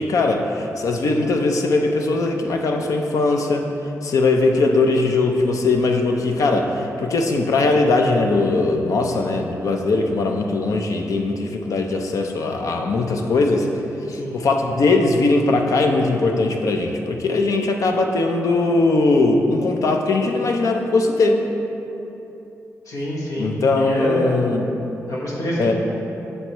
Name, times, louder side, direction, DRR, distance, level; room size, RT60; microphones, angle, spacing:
voice 1, 0.0-3.7 4.0-13.7 14.1-21.4 23.4-24.7 25.6-25.7, left 3 dB, 75° left, 3 dB, 0.6 m, -20 dB
voice 2, 22.9-24.3 25.1-25.7, equal, 90° left, -4 dB, 1.4 m, -26 dB
7.7 x 6.6 x 3.0 m, 2.9 s
cardioid pair, 85°, 6 cm